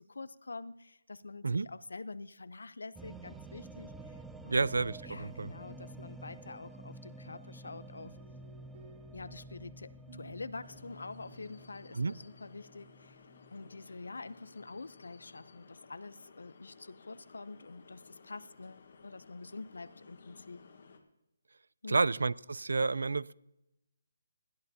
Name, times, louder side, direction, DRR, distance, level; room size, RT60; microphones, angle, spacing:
voice 1, 0.0-4.2 4.4-4.7 5.1-8.2 9.1-13.2 13.5-20.6 21.8-22.1, left 3 dB, 90° left, 16 dB, 0.7 m, -46 dB
sound 1, 2.9-15.5, right 2 dB, ahead, 0.3 m, -51 dB
voice 2, 4.5-5.5 12.0-12.1 21.9-23.3, right 3 dB, 80° right, 22 dB, 0.4 m, -30 dB
sound 2, 7.6-13.2, right 2 dB, 40° right, 3.1 m, -58 dB
sound 3, 10.6-21.0, left 4 dB, 40° left, 1.4 m, -58 dB
20.0 x 13.5 x 2.8 m, 0.90 s
hypercardioid pair, 175°, 0 cm